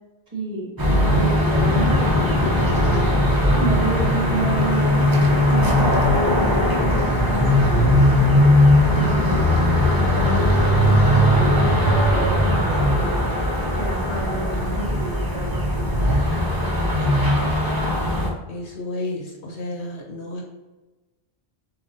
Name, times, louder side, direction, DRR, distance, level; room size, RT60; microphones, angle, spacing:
voice 1, 0.3-0.7 1.2-2.5 3.6-5.1 5.5-5.7 6.0-6.7 7.3-8.2 8.9-9.5 9.8-13.1 13.7-16.2, right 1 dB, 40° right, -4 dB, 1.4 m, -30 dB
sound 1, 0.8-18.3, left 1 dB, 25° right, 0.7 m, -19 dB
voice 2, 18.5-20.4, left 2 dB, 85° left, -1 dB, 1.3 m, -32 dB
7.1 x 2.6 x 2.6 m, 1.1 s
omnidirectional pair, 1.1 m